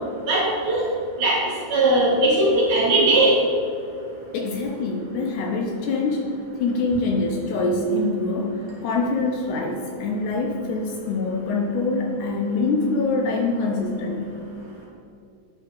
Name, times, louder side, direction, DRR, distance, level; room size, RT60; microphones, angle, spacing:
voice 1, 0.3-0.8 1.2-1.4 1.7-3.3, right 2 dB, 55° right, -7 dB, 3.0 m, -19 dB
voice 2, 4.3-6.3 6.6-14.3, left 3 dB, 75° left, 1 dB, 1.9 m, -24 dB
9.6 x 3.9 x 5.1 m, 2.5 s
omnidirectional pair, 3.8 m